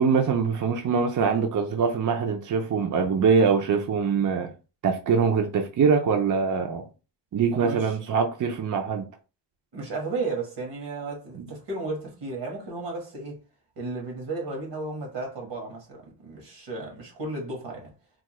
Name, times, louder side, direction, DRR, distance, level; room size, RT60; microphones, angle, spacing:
voice 1, 0.0-4.5 4.8-6.8 7.3-9.0 11.4-11.5, right 5 dB, 50° right, 0.4 m, -23 dB
voice 2, 7.5-7.9 9.7-13.4 13.8-17.9, right 3 dB, 85° right, 1.4 m, -34 dB
3.5 x 2.1 x 3.0 m
wide cardioid pair, 155°, 42 cm